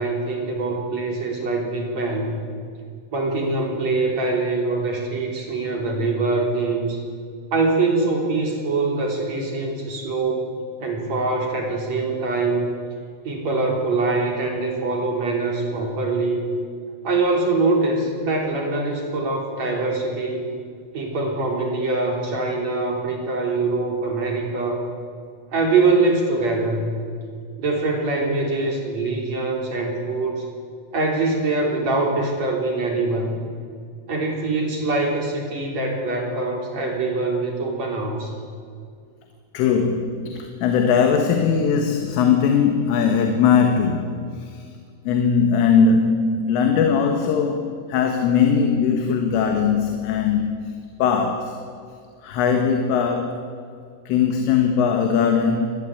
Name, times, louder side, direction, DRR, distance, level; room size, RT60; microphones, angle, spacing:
voice 1, 0.0-2.3 3.1-7.0 7.5-10.5 10.8-12.7 13.2-16.5 17.0-20.4 20.9-24.8 25.5-27.0 27.6-30.5 30.9-33.4 34.1-38.3, right 3 dB, 40° right, 1 dB, 4.1 m, -23 dB
voice 2, 39.5-44.6 45.1-50.6 51.0-51.6 52.2-53.4 54.1-55.7, left 6 dB, 85° left, 4 dB, 4.2 m, -20 dB
27.0 x 20.0 x 8.5 m, 2.2 s
omnidirectional pair, 5.6 m